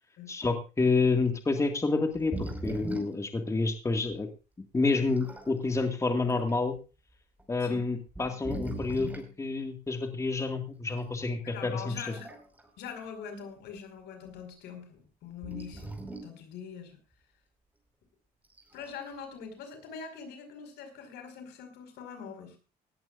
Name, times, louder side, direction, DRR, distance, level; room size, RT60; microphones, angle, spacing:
voice 1, 0.3-4.3 4.7-6.8 7.5-12.1, left 3 dB, 15° left, 6 dB, 1.9 m, -29 dB
sound 1, 1.1-1.3 2.1-3.3 4.1-4.2 4.9-5.5 6.3-6.5 7.4-7.5 8.1-9.3 11.0-11.1 12.0-12.7 13.0-13.1 15.4-16.4 18.4-19.0, right 2 dB, 10° right, 4.9 m, -39 dB
voice 2, 11.4-12.3 12.8-15.9 16.2-17.0 18.7-22.6, left 6 dB, 80° left, 7 dB, 5.2 m, -43 dB
18.5 x 14.0 x 2.5 m, 0.31 s
cardioid pair, 110°, 17 cm